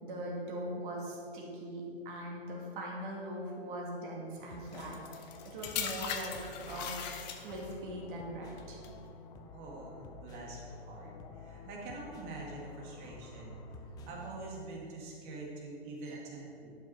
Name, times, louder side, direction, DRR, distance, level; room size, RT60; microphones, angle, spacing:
voice 1, 0.0-6.4 6.7-7.0 7.4-8.8 16.0-16.2, right 1 dB, 50° right, -2 dB, 2.5 m, -41 dB
sound 1, 4.4-14.5, left 3 dB, 10° left, 0.4 m, -50 dB
sound 2, 4.7-7.8 8.6-8.9, left 8 dB, 40° left, 1.1 m, -39 dB
voice 2, 9.5-16.8, right 2 dB, 30° right, -2 dB, 2.2 m, -45 dB
11.5 x 6.2 x 4.9 m, 2.7 s
hypercardioid pair, 130°, 32 cm